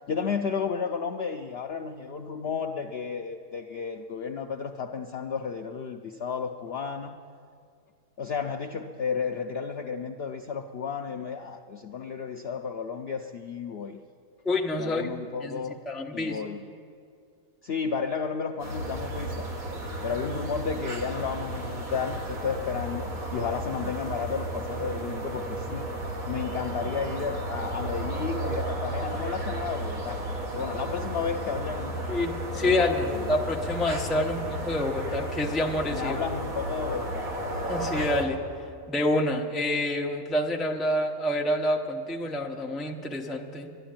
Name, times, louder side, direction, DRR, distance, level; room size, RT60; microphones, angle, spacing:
voice 1, 0.1-7.2 8.2-14.0 14.8-15.8 16.1-16.6 17.6-19.5 20.0-25.9 26.3-30.2 30.5-32.0 32.6-33.3 34.2-34.3 35.9-37.3, left 6 dB, 80° left, 4 dB, 0.5 m, -32 dB
voice 2, 14.4-16.4 32.1-36.2 37.7-38.4 38.9-43.7, left 1 dB, ahead, 1 dB, 0.4 m, -28 dB
sound 1, 18.6-38.2, right 1 dB, 60° right, 2.0 m, -33 dB
11.5 x 11.0 x 8.8 m, 2.3 s
omnidirectional pair, 1.7 m